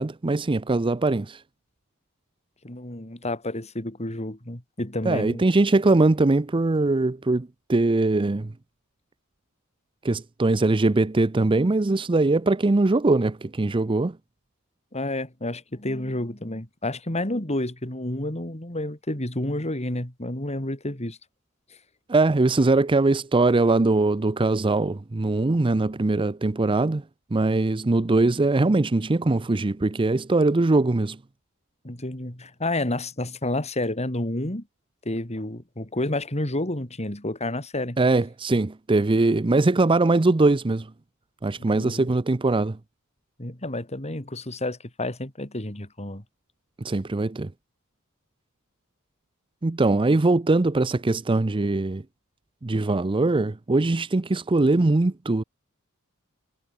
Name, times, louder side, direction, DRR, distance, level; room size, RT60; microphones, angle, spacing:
voice 1, 0.0-1.4 5.0-8.5 10.0-14.2 22.1-27.0 27.3-31.2 38.0-40.9 41.4-42.8 46.8-47.5 49.6-52.0 52.6-55.4, right 2 dB, 25° right, 0.5 m, -21 dB
voice 2, 2.6-5.4 14.9-21.2 31.8-34.6 35.1-38.0 41.6-42.1 43.4-46.2, left 1 dB, 30° left, 3.7 m, -30 dB
head